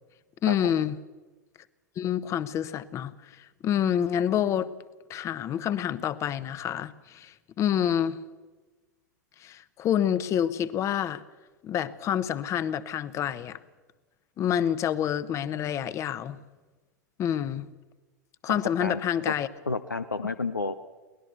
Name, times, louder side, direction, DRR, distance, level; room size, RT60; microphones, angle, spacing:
voice 1, 0.4-1.0 2.0-4.7 5.1-8.2 9.4-11.2 11.6-13.6 14.4-16.4 17.2-17.7 18.4-19.5, left 9 dB, 30° left, 1.0 m, -28 dB
voice 2, 18.5-19.0 19.7-20.8, left 3 dB, 85° left, 0.7 m, -30 dB
23.0 x 18.5 x 6.9 m
figure-of-eight pair, 90°, 10 cm